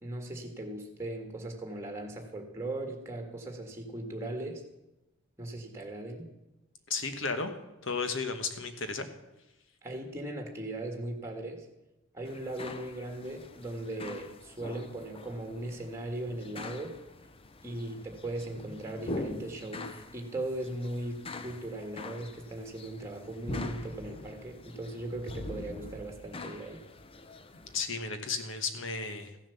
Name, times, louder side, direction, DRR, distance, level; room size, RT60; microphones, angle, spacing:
voice 1, 0.0-4.6 5.4-6.3 9.8-11.6 12.1-17.0 17.6-26.8, right 1 dB, 15° right, 3 dB, 1.7 m, -38 dB
voice 2, 6.9-7.5 7.8-9.1 27.7-29.5, left 4 dB, 65° left, 8 dB, 1.3 m, -34 dB
sound 1, 12.3-27.8, left 2 dB, 25° left, 0.6 m, -44 dB
14.5 x 7.3 x 7.0 m, 0.94 s
head